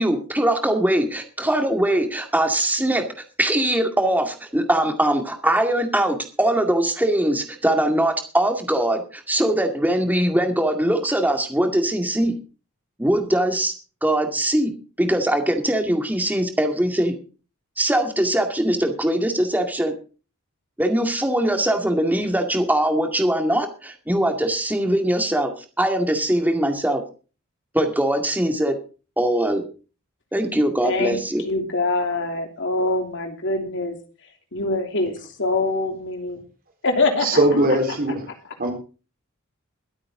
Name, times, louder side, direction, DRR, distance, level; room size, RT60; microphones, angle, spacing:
voice 1, 0.0-3.1 3.4-12.3 13.0-13.7 14.0-14.7 15.0-17.1 17.8-19.9 20.8-25.5 25.8-27.0 27.7-28.8 29.2-29.6 30.3-31.4, right 1 dB, 10° right, 5 dB, 2.1 m, -21 dB
voice 2, 30.8-31.1 31.4-34.0 34.5-36.4 36.8-37.4, left 2 dB, 60° left, 5 dB, 3.0 m, -24 dB
voice 3, 37.2-38.2 38.6-38.7, right 1 dB, 45° right, 3 dB, 4.2 m, -19 dB
22.0 x 8.8 x 3.8 m, 0.35 s
head